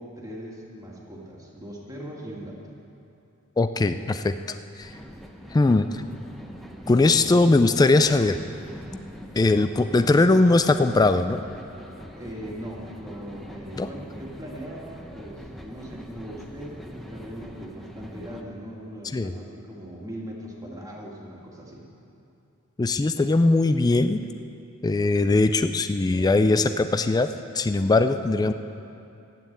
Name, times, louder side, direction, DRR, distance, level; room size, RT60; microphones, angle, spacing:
voice 1, 0.0-2.6 12.1-21.9, equal, 15° right, -2 dB, 1.9 m, -39 dB
voice 2, 3.6-5.0 5.5-6.0 6.9-8.4 9.4-11.5 13.8-13.9 19.0-19.3 22.8-24.2 24.8-27.3 27.5-28.5, left 2 dB, 20° left, 10 dB, 0.3 m, -20 dB
sound 1, 4.8-18.4, equal, ahead, 0.9 m, -43 dB
12.0 x 9.3 x 8.6 m, 2.7 s
head